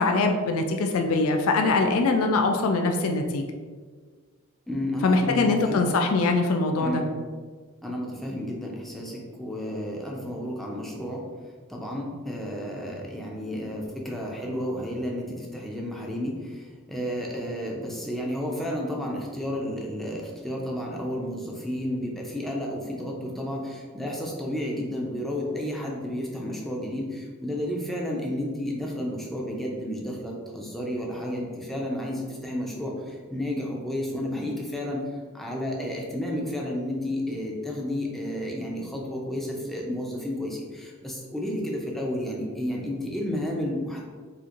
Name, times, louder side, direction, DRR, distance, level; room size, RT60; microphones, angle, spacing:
voice 1, 0.0-3.5 5.0-7.0, left 3 dB, 75° left, 4 dB, 0.4 m, -23 dB
voice 2, 4.7-5.9 6.8-7.1 7.8-11.2 11.7-16.6 16.9-35.0 35.3-44.0, left 1 dB, ahead, -2 dB, 0.5 m, -31 dB
4.3 x 2.5 x 2.5 m, 1.5 s
head